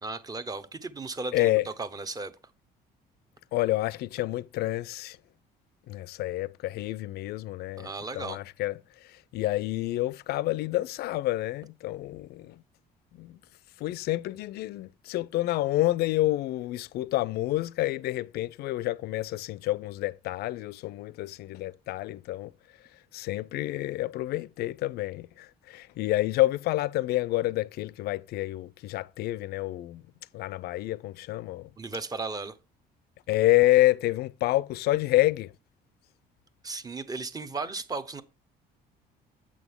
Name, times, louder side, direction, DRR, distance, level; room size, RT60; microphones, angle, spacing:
voice 1, 0.0-2.3 7.8-8.4 31.8-32.5 36.6-38.2, right 3 dB, 20° right, 0.8 m, -35 dB
voice 2, 1.3-1.7 3.5-5.2 5.9-12.6 13.1-13.4 13.8-22.5 22.8-30.0 30.3-31.7 33.3-35.5, left 16 dB, 70° left, 0.4 m, -28 dB
8.5 x 6.2 x 3.6 m
cardioid pair, 110°, 17 cm